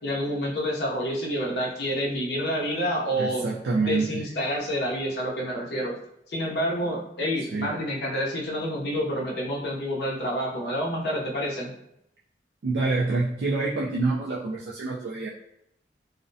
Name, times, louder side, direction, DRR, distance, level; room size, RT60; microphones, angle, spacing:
voice 1, 0.0-3.5 3.8-6.0 6.3-11.7, equal, 60° left, -2 dB, 0.6 m, -28 dB
voice 2, 3.1-4.2 7.5-7.8 12.6-15.3, right 3 dB, 70° right, -4 dB, 0.3 m, -27 dB
2.4 x 2.0 x 2.6 m, 0.77 s
head